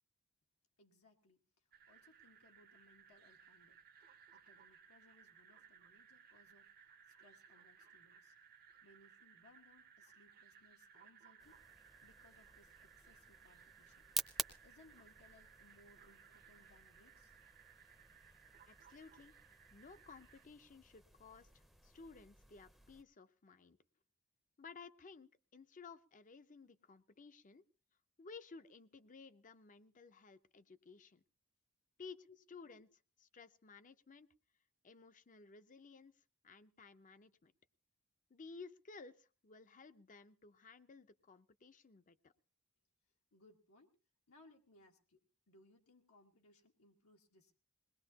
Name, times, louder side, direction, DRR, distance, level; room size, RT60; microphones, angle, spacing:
voice 1, 0.8-3.8 4.3-6.7 7.1-8.3 8.8-11.7 12.0-14.3 14.6-17.4 32.3-32.4 32.8-32.9 43.3-44.0 44.3-45.2 45.5-47.5, left 2 dB, 80° left, 1 dB, 1.6 m, -68 dB
sound 1, 1.7-20.5, right 7 dB, 45° right, 0.8 m, -63 dB
sound 2, 11.4-23.0, right 1 dB, ahead, 0.7 m, -50 dB
voice 2, 18.7-19.3 19.7-23.8 24.6-27.6 28.2-31.2 32.0-32.9 33.2-34.3 34.8-37.5 38.3-42.3, left 4 dB, 35° left, 12 dB, 0.7 m, -56 dB
21.5 x 19.0 x 2.8 m, 0.35 s
head